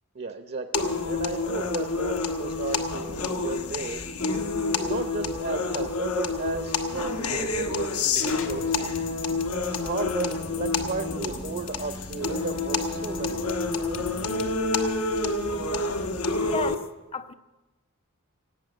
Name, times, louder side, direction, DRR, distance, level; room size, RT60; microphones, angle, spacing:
voice 1, 0.1-4.0 4.8-8.9 9.5-13.7, right 3 dB, 45° right, 0.7 m, -34 dB
sound 1, 0.7-16.8, left 3 dB, 80° left, 1.3 m, -28 dB
sound 2, 8.1-14.5, left 4 dB, 60° left, 1.5 m, -40 dB
voice 2, 16.4-16.8 17.1-17.3, left 5 dB, 25° left, 0.5 m, -32 dB
17.5 x 8.6 x 7.7 m
head